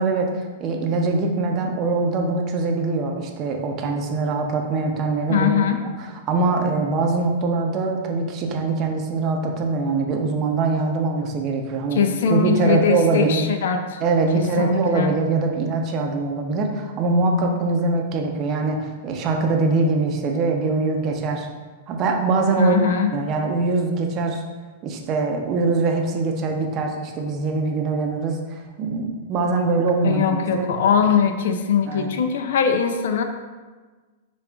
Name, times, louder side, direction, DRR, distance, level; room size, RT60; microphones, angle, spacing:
voice 1, 0.0-12.0 12.3-13.4 14.0-21.5 21.9-24.4 24.8-30.7 31.9-32.1, right 3 dB, 35° right, 2 dB, 0.6 m, -23 dB
voice 2, 5.3-5.8 11.9-14.0 14.3-15.2 22.6-23.1 30.0-33.2, left 6 dB, 65° left, 6 dB, 0.4 m, -21 dB
6.7 x 2.3 x 2.3 m, 1.3 s
hypercardioid pair, 110°, 0 cm